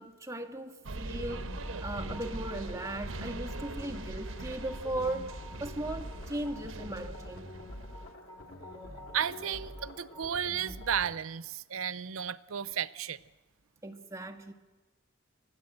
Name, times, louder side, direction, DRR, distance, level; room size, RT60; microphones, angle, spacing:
voice 1, 0.0-7.5 13.8-14.5, right 1 dB, 15° right, 1.5 m, -38 dB
sound 1, 0.8-8.1, right 2 dB, 70° right, 1.0 m, -42 dB
sound 2, 1.1-11.1, left 1 dB, 85° left, 2.8 m, -45 dB
voice 2, 9.1-13.2, right 8 dB, 90° right, 0.6 m, -33 dB
24.5 x 15.5 x 7.8 m
head